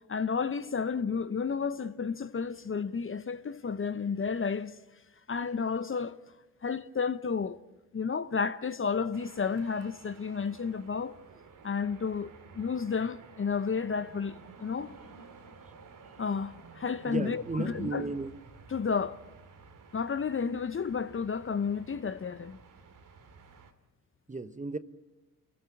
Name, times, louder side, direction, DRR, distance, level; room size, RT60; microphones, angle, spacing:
voice 1, 0.1-4.7 5.3-6.2 6.6-7.6 7.9-11.1 11.6-14.9 16.2-18.0 18.7-19.2 19.9-22.6, left 5 dB, 30° left, 1.0 m, -32 dB
sound 1, 9.1-23.7, right 5 dB, 55° right, 2.4 m, -53 dB
voice 2, 17.1-18.3 24.3-24.8, right 3 dB, 20° right, 1.1 m, -34 dB
27.5 x 14.5 x 8.6 m
hypercardioid pair, 45°, 39 cm